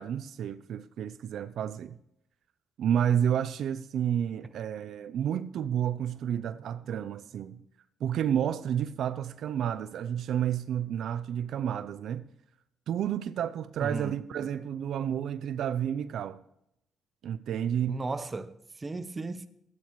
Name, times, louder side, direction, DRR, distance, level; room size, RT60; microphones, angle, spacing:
voice 1, 0.0-2.0 2.8-7.6 8.0-12.3 12.9-16.4 17.2-18.0, right 9 dB, 70° right, 0.4 m, -30 dB
voice 2, 13.8-14.1 17.9-19.5, right 3 dB, 25° right, 0.8 m, -35 dB
13.5 x 9.0 x 3.1 m
cardioid pair, 90°, 0 cm